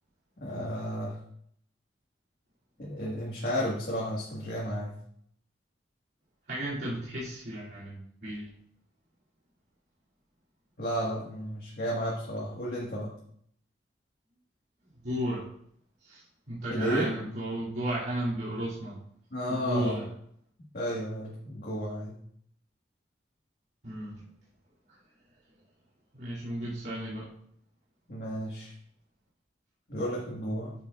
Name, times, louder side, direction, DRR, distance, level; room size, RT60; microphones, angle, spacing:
voice 1, 0.4-1.2 2.8-4.9 10.8-13.1 16.7-17.1 19.3-20.0 20.7-22.2 28.1-28.7 29.9-30.7, equal, 55° left, -5 dB, 1.5 m, -32 dB
voice 2, 6.5-8.5 15.0-15.5 16.0-19.0 19.5-20.1 23.8-24.2 24.9-25.0 26.1-27.3, right 1 dB, 65° right, -10 dB, 2.5 m, -34 dB
9.4 x 6.9 x 2.4 m, 0.67 s
head